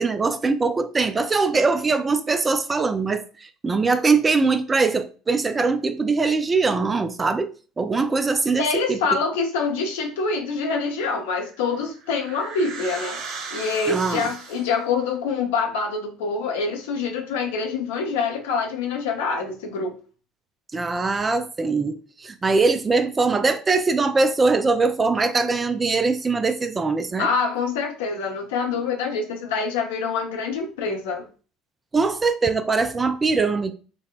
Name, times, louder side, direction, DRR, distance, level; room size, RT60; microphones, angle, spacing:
voice 1, 0.0-7.5 7.8-9.0 13.9-14.3 20.7-27.3 31.9-33.7, right 4 dB, 25° right, 0.3 m, -22 dB
voice 2, 8.6-13.2 13.5-19.9 27.2-31.3, left 4 dB, 70° left, 0.6 m, -25 dB
sound 1, 11.5-14.9, right 5 dB, 60° right, 0.7 m, -36 dB
4.0 x 2.1 x 2.3 m
figure-of-eight pair, 60°, 0 cm